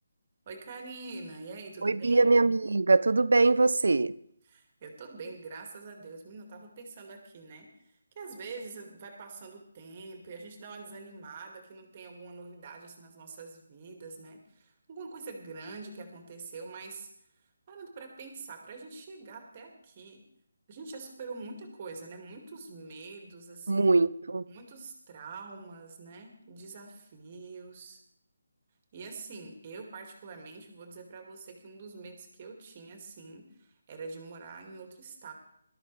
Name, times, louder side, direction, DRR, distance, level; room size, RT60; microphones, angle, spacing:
voice 1, 0.5-2.3 4.5-17.1 17.7-20.3 20.7-23.9 24.5-28.0 28.9-35.3, right 4 dB, 30° right, 4 dB, 2.1 m, -45 dB
voice 2, 1.8-4.1 23.7-24.5, right 3 dB, 80° right, 19 dB, 0.5 m, -23 dB
18.5 x 13.0 x 3.3 m, 0.70 s
hypercardioid pair, 170°, 0 cm